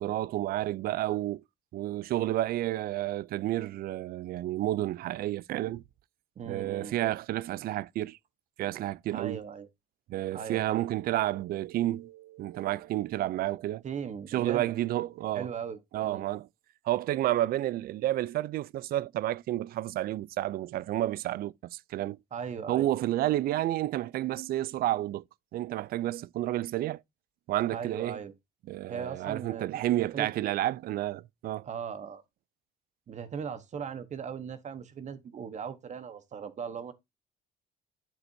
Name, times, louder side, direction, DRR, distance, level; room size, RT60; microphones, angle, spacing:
voice 1, 0.0-1.4 1.7-5.8 6.5-8.2 8.6-9.4 10.1-13.8 14.3-15.5 15.9-16.5 16.9-22.2 22.7-25.2 25.5-27.0 27.5-28.2 28.7-31.7, right 14 dB, 60° right, 0.4 m, -30 dB
voice 2, 6.4-7.0 9.1-9.7 10.3-10.8 13.8-14.7 15.3-16.3 22.3-22.9 27.7-28.3 28.9-29.8 30.1-30.3 31.6-32.2 33.1-36.9, right 7 dB, 45° right, 1.1 m, -38 dB
9.1 x 7.7 x 2.7 m
cardioid pair, 110°, 17 cm